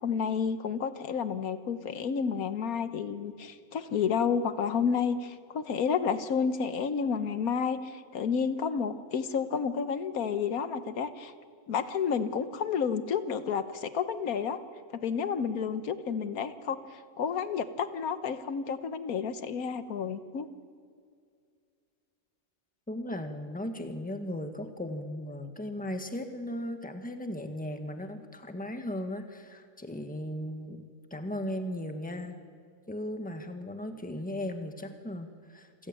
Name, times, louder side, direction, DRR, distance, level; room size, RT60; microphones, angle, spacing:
voice 1, 0.0-11.3 11.7-14.6 14.9-20.5, left 6 dB, 85° left, 11 dB, 1.5 m, -30 dB
voice 2, 22.9-30.8 31.1-32.4 32.9-35.9, left 1 dB, 5° left, 6 dB, 1.4 m, -37 dB
27.5 x 15.0 x 9.0 m, 2.2 s
omnidirectional pair, 1.5 m